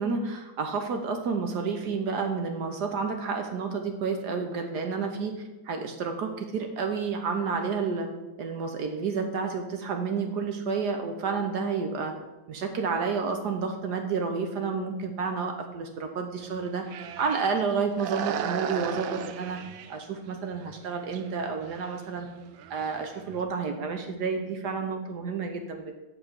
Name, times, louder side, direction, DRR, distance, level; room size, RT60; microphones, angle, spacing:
voice 1, 0.0-8.1 8.4-12.1 12.5-16.8 17.2-19.6 19.9-22.3 22.7-25.9, right 5 dB, 65° right, 5 dB, 1.3 m, -30 dB
sound 1, 16.4-17.6 17.9-20.0 20.5-20.7 21.0-21.2 21.5-23.4, right 9 dB, 90° right, 1.4 m, -36 dB
7.7 x 4.8 x 6.7 m, 1.1 s
omnidirectional pair, 2.1 m